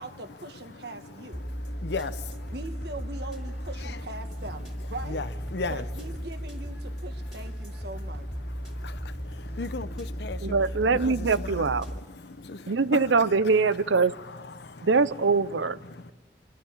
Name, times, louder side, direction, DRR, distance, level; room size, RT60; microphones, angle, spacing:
voice 1, 0.0-1.5 2.5-5.3 5.7-8.3, right 2 dB, 60° right, 1.5 m, -41 dB
voice 2, 0.7-2.6 3.8-4.0 4.5-4.6 5.0-5.9 8.4-13.5 14.0-14.9 15.8-16.1, left 3 dB, 65° left, 0.8 m, -38 dB
sound 1, 1.3-12.0, equal, ahead, 3.2 m, -36 dB
voice 3, 10.4-11.9 12.7-14.1 14.8-15.8, right 4 dB, 80° right, 0.6 m, -23 dB
27.5 x 12.5 x 8.7 m
head